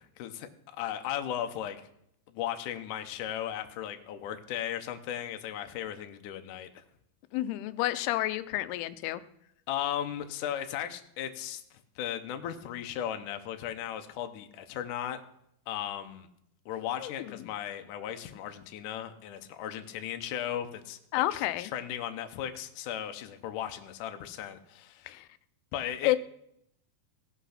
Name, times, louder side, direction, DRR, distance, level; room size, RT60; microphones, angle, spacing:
voice 1, 0.0-1.8 2.3-6.8 9.7-15.2 15.7-16.3 16.7-21.0 21.3-25.1 25.7-26.2, left 10 dB, 75° left, 6 dB, 2.0 m, -36 dB
voice 2, 7.3-9.2 17.0-17.3 21.1-21.7 25.1-25.3 26.0-26.2, left 15 dB, 90° left, 14 dB, 2.6 m, -30 dB
17.0 x 6.0 x 5.8 m, 0.75 s
omnidirectional pair, 4.5 m